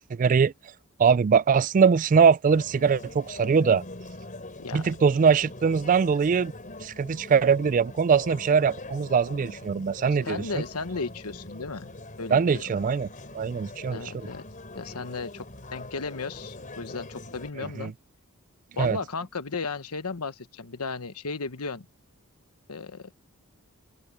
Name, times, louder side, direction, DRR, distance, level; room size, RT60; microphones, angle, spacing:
voice 1, 0.1-0.5 1.0-3.8 4.7-6.5 6.8-10.6 12.3-13.1 13.3-14.0 17.6-17.9 18.8-19.0, right 6 dB, 35° right, 0.3 m, -22 dB
sound 1, 2.5-17.5, left 2 dB, 35° left, 4.5 m, -43 dB
voice 2, 10.2-11.9 12.2-12.6 13.9-14.4 14.7-15.5 15.7-17.9 18.8-21.9 22.7-23.1, left 4 dB, 85° left, 1.2 m, -35 dB
open air
head